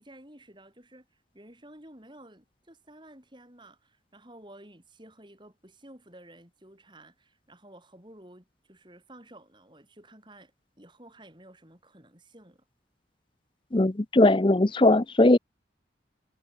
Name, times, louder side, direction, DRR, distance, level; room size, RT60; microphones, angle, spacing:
voice 1, 0.0-10.5 10.8-12.6, right 1 dB, 25° right, 6.7 m, -52 dB
voice 2, 13.7-15.4, left 2 dB, 25° left, 0.6 m, -20 dB
head